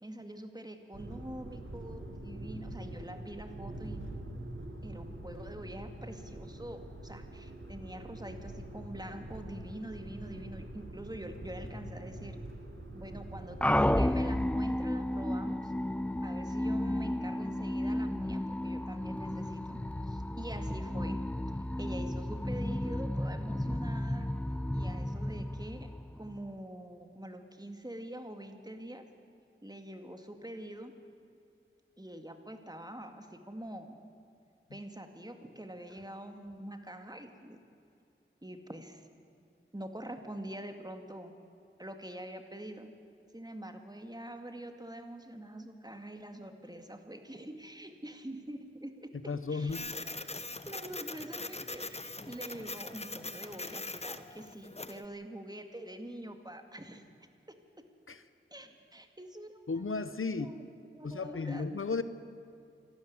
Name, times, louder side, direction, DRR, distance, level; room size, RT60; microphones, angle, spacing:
voice 1, 0.0-4.0 4.8-12.4 12.9-15.7 16.2-21.2 21.8-24.3 24.7-29.1 29.6-30.9 32.0-34.0 34.7-37.6 38.4-39.1 39.7-41.3 41.8-42.9 43.3-50.2 50.7-57.0 57.5-57.6 58.5-59.6 60.4-60.7 60.9-61.9, right 1 dB, 20° right, 6 dB, 2.1 m, -45 dB
sound 1, 0.9-14.5, right 1 dB, 70° right, 2.2 m, -44 dB
sound 2, 13.6-26.5, left 1 dB, 5° left, 0.5 m, -33 dB
voice 2, 49.3-49.9 58.1-58.2 59.7-60.5 61.0-62.0, left 4 dB, 75° left, 12 dB, 0.9 m, -34 dB
Printer, 49.7-55.0, left 2 dB, 30° left, 0.9 m, -41 dB
27.0 x 12.5 x 9.6 m, 2.5 s
wide cardioid pair, 60°, 21 cm